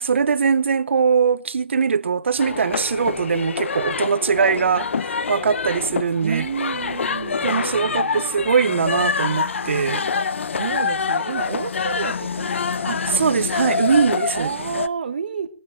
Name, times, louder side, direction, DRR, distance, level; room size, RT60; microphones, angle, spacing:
voice 1, 0.0-6.5 7.4-10.1 12.9-14.5, right 6 dB, 75° right, 0.7 m, -21 dB
sound 1, 2.4-14.9, left 5 dB, 85° left, 0.7 m, -26 dB
voice 2, 6.2-8.3 10.6-13.0 14.3-15.5, right 6 dB, 45° right, 1.2 m, -30 dB
20.0 x 9.3 x 4.3 m
hypercardioid pair, 180°, 7 cm